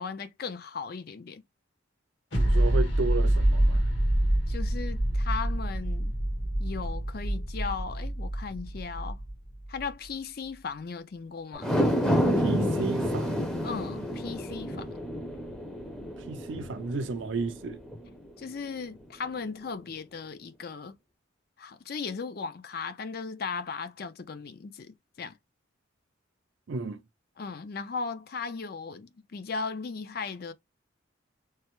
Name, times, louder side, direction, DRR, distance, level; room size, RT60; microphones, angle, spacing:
voice 1, 0.0-1.4 4.5-6.2 6.6-9.2 9.7-11.7 13.6-14.9 18.4-20.9 21.6-25.4 27.4-30.5, left 5 dB, 50° left, 0.4 m, -37 dB
sound 1, 2.3-9.8, right 1 dB, 65° left, 1.2 m, -26 dB
voice 2, 2.3-3.9 12.4-13.6 16.3-17.8 26.7-27.0, right 3 dB, 65° right, 0.5 m, -33 dB
sound 2, 11.5-18.0 18.5-18.6, equal, 5° left, 0.6 m, -29 dB
3.3 x 2.0 x 3.0 m
head